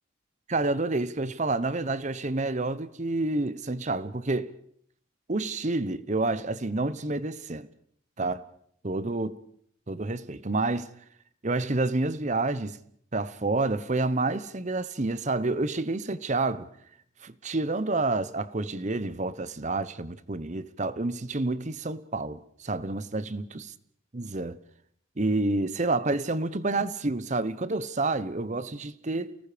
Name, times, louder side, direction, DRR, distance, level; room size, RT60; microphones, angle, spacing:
voice 1, 0.5-4.5 5.3-7.7 8.2-8.4 8.8-9.4 9.9-10.9 11.4-12.8 13.1-16.7 17.2-23.4 24.1-24.6 25.2-29.4, right 2 dB, 35° right, 0.9 m, -29 dB
29.5 x 19.0 x 5.0 m
head